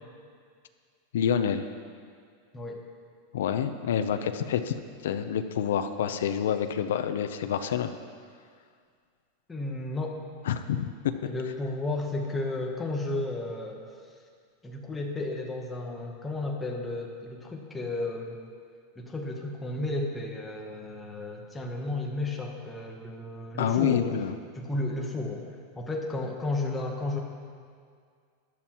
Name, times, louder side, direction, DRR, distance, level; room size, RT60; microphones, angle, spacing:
voice 1, 1.1-1.7 3.3-4.7 5.0-8.0 10.4-11.1 23.6-24.3, left 8 dB, 85° left, 9 dB, 0.6 m, -27 dB
voice 2, 9.5-10.2 11.2-13.8 14.6-18.4 19.0-24.1 24.5-25.5 25.8-27.2, left 2 dB, 10° left, 0 dB, 0.9 m, -33 dB
15.5 x 11.0 x 3.0 m, 2.1 s
supercardioid pair, 180°, 0 cm